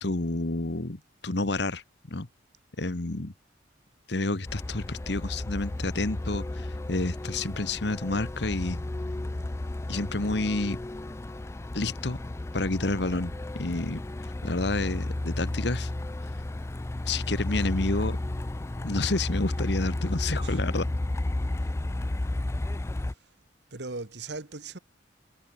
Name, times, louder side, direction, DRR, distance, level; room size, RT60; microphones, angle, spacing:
voice 1, 0.0-1.8 2.1-2.3 2.8-3.3 4.1-8.8 9.9-10.8 11.7-12.2 12.5-13.3 13.6-14.0 14.4-15.9 17.1-18.2 18.8-20.9, left 2 dB, 65° left, 1.4 m, -29 dB
Truck, 4.5-23.1, left 1 dB, 15° left, 0.3 m, -33 dB
voice 2, 23.7-24.8, right 3 dB, 65° right, 1.6 m, -38 dB
head